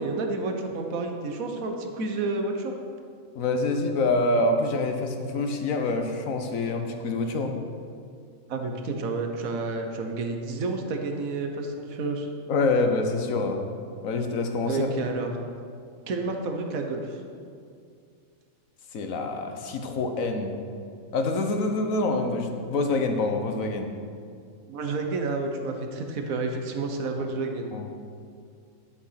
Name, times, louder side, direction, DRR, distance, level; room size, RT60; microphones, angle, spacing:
voice 1, 0.0-2.7 8.5-12.3 14.7-15.4 16.1-17.2 24.7-27.7, right 3 dB, 85° right, 4 dB, 1.4 m, -30 dB
voice 2, 3.3-7.5 12.5-13.6 14.0-14.9 18.9-20.5 21.1-23.9 27.7-27.9, left 2 dB, 75° left, 5 dB, 1.4 m, -26 dB
11.5 x 7.1 x 5.7 m, 2.3 s
omnidirectional pair, 1.4 m